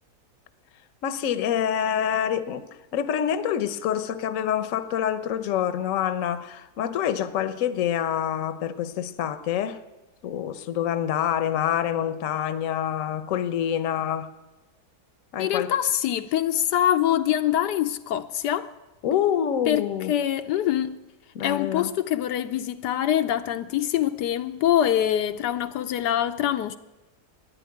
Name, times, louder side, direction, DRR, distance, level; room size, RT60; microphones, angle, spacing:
voice 1, 1.0-2.6 2.9-9.8 10.2-14.3 15.3-15.7 19.0-20.1 21.3-21.9, left 9 dB, 60° left, 1.1 m, -26 dB
voice 2, 15.4-18.7 19.7-19.8 20.1-21.0 21.4-26.8, left 11 dB, 80° left, 1.3 m, -24 dB
13.0 x 10.5 x 9.5 m
omnidirectional pair, 1.8 m